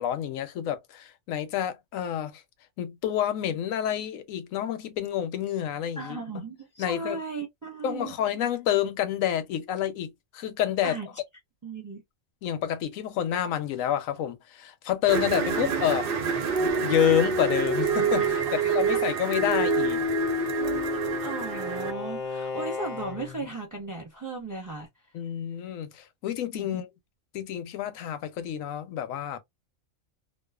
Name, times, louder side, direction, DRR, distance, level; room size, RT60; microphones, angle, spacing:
voice 1, 0.0-2.4 2.8-6.2 6.8-7.2 7.8-11.0 12.4-16.1 16.8-20.1 25.1-26.9 27.3-29.4, left 10 dB, 80° left, 1.0 m, -28 dB
voice 2, 6.0-8.1 10.8-11.1 11.6-12.0 18.2-19.0 21.2-24.9 26.5-26.9, right 3 dB, 15° right, 0.8 m, -36 dB
sound 1, 15.1-21.9, right 4 dB, 55° right, 0.6 m, -26 dB
Bowed string instrument, 19.9-23.6, left 4 dB, 45° left, 0.6 m, -37 dB
2.4 x 2.3 x 2.3 m
omnidirectional pair, 1.4 m